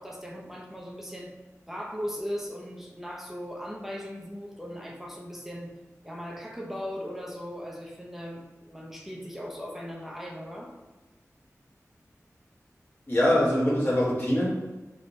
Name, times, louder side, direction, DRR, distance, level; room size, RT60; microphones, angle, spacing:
voice 1, 0.0-1.3 1.7-5.7 6.0-10.7, equal, 5° right, -2 dB, 0.7 m, -38 dB
voice 2, 13.1-14.5, left 1 dB, 40° left, -7 dB, 1.3 m, -23 dB
3.4 x 2.8 x 2.7 m, 1.1 s
wide cardioid pair, 55°, 6 cm